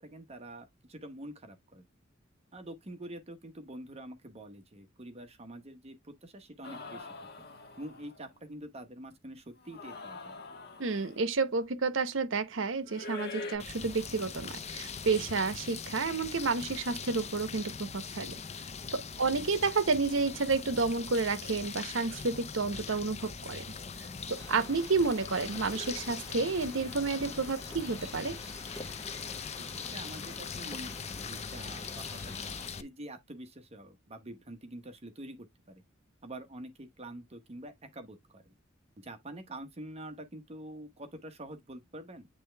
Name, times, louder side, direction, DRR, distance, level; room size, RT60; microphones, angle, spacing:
voice 1, 0.0-1.8 2.5-7.1 7.8-10.4 19.1-19.6 29.6-35.8 36.2-38.5 39.0-42.3, right 1 dB, 35° right, 1.0 m, -46 dB
sound 1, 6.6-8.3 9.6-11.3 12.9-13.6, left 3 dB, 55° left, 1.5 m, -44 dB
voice 2, 10.8-18.4 18.9-23.6 24.3-28.4, right 4 dB, 75° right, 0.9 m, -30 dB
sound 2, 13.6-32.8, left 6 dB, 35° left, 0.6 m, -41 dB
sound 3, 24.4-32.7, left 1 dB, 20° left, 1.2 m, -48 dB
8.6 x 3.4 x 3.3 m
head